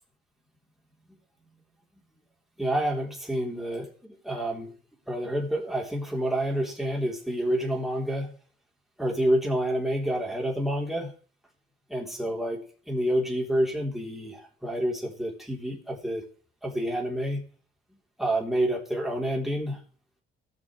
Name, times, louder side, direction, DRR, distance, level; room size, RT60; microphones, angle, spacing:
voice 1, 2.6-4.7 5.1-8.4 9.0-11.1 11.9-16.2 16.6-17.5 18.2-19.8, right 1 dB, ahead, -2 dB, 3.5 m, -28 dB
18.0 x 6.6 x 3.3 m, 0.43 s
cardioid pair, 90°, 20 cm